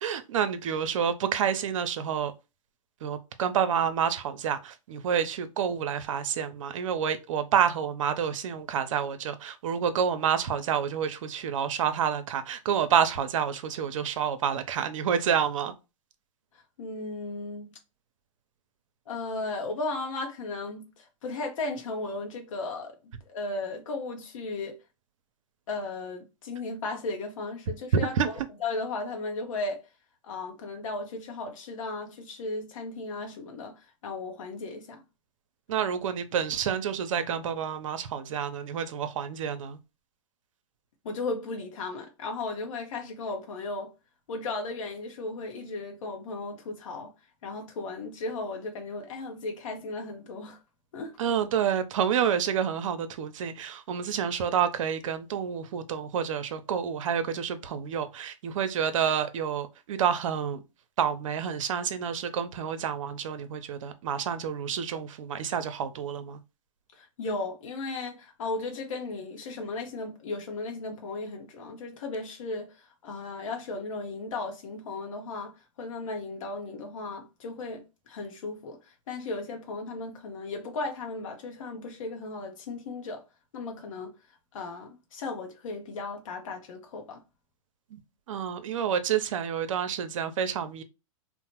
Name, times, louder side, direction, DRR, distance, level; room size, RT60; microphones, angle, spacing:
voice 1, 0.0-2.3 3.0-15.7 27.9-28.3 35.7-39.8 51.2-60.6 61.0-66.4 87.9-88.0 88.3-90.8, right 8 dB, 70° right, 0.6 m, -28 dB
voice 2, 16.8-17.7 19.1-23.0 23.3-24.8 25.7-28.3 28.6-29.9 30.2-35.0 41.0-43.9 44.3-47.1 47.4-50.6 50.9-51.2 66.9-83.2 83.5-84.1 84.5-87.2, left 3 dB, 75° left, 0.6 m, -35 dB
2.9 x 2.0 x 2.9 m
hypercardioid pair, 130°, 17 cm